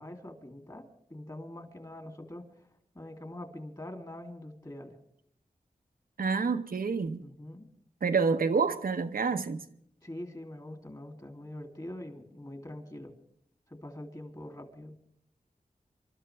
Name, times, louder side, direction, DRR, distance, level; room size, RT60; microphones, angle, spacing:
voice 1, 0.0-2.5 2.9-5.0 7.2-7.7 10.0-13.1 13.7-14.9, left 1 dB, 25° left, 2.9 m, -44 dB
voice 2, 6.2-7.2 8.0-9.6, right 5 dB, 85° right, 0.9 m, -28 dB
27.0 x 13.0 x 3.4 m
wide cardioid pair, 50°, 15 cm